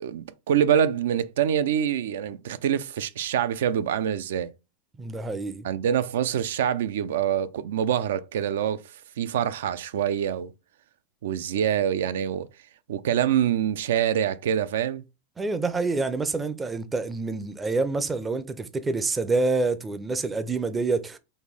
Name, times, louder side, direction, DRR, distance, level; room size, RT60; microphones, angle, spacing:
voice 1, 0.0-4.5 5.6-10.5 11.2-12.5 12.9-15.0, right 9 dB, 90° right, 0.4 m, -25 dB
voice 2, 5.0-5.7 15.4-21.2, right 3 dB, 10° right, 0.4 m, -27 dB
4.2 x 2.5 x 3.4 m
supercardioid pair, 160°, 0 cm